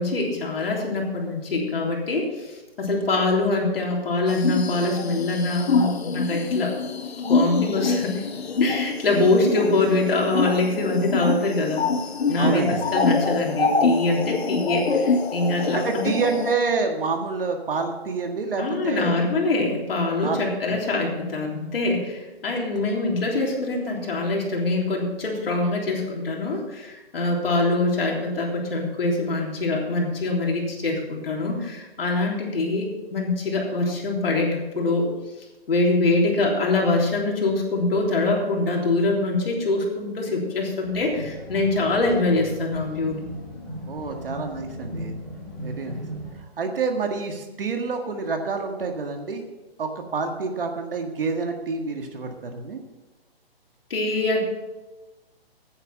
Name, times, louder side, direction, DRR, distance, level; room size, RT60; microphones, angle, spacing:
voice 1, 0.0-6.7 7.3-8.2 8.6-11.8 12.3-16.1 18.6-35.1 35.7-43.2 53.9-54.4, left 2 dB, 65° left, -1 dB, 3.6 m, -24 dB
sound 1, 4.3-16.5, left 4 dB, 85° left, 1.3 m, -25 dB
voice 2, 12.4-12.8 15.7-19.3 20.2-20.4 20.7-20.8 43.9-45.2 45.6-46.0 46.3-49.4 49.8-52.8, right 4 dB, 65° right, 4 dB, 1.8 m, -28 dB
sound 2, 40.8-46.3, equal, ahead, 2.0 m, -37 dB
10.0 x 9.9 x 6.1 m, 1.1 s
hypercardioid pair, 170°, 31 cm